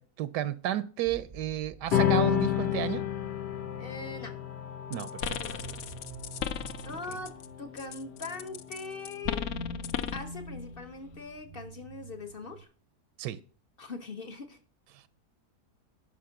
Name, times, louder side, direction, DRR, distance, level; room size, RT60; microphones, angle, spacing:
voice 1, 0.0-3.0 4.9-5.4 13.2-13.4 14.9-15.0, right 12 dB, 80° right, 1.2 m, -32 dB
sound 1, 1.1-12.6, right 2 dB, 60° right, 0.3 m, -47 dB
sound 2, 1.9-8.6, left 11 dB, 85° left, 1.6 m, -31 dB
voice 2, 3.8-4.4 5.4-5.8 6.8-9.5 10.1-12.7 13.8-14.6, left 3 dB, 40° left, 1.1 m, -41 dB
sound 3, 4.9-7.5 7.8-10.3, left 9 dB, 65° left, 0.8 m, -36 dB
11.0 x 5.8 x 5.9 m
omnidirectional pair, 1.8 m